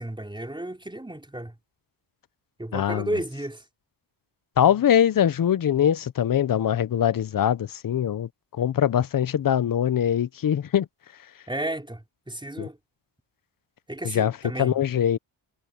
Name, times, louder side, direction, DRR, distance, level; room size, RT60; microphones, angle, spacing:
voice 1, 0.0-1.5 2.6-3.6 11.5-12.8 13.9-14.8, right 1 dB, 10° right, 4.0 m, -33 dB
voice 2, 2.7-3.1 4.6-8.3 8.6-10.9 12.6-12.7 14.0-14.3 14.6-15.2, left 9 dB, 45° left, 0.8 m, -22 dB
cardioid pair, 90°, 48 cm